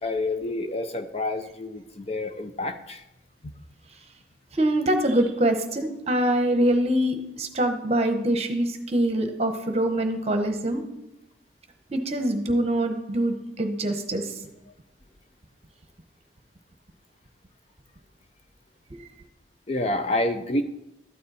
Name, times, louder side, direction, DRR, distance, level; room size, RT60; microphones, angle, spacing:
voice 1, 0.0-3.0 19.7-20.6, left 2 dB, 35° left, 7 dB, 0.6 m, -28 dB
voice 2, 4.5-10.8 11.9-14.4 18.9-19.0, right 1 dB, 35° right, 6 dB, 1.0 m, -24 dB
13.0 x 9.5 x 4.2 m, 0.90 s
head